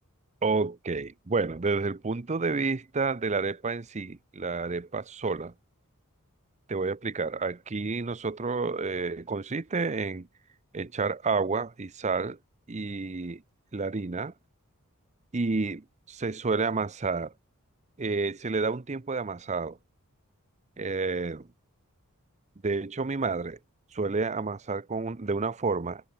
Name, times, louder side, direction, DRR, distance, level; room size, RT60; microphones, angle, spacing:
voice 1, 0.4-5.5 6.7-10.3 10.7-12.4 12.7-13.4 13.7-14.3 15.3-17.3 18.0-19.8 20.8-21.5 22.6-23.6 23.9-26.0, right 4 dB, 30° right, 0.7 m, -30 dB
head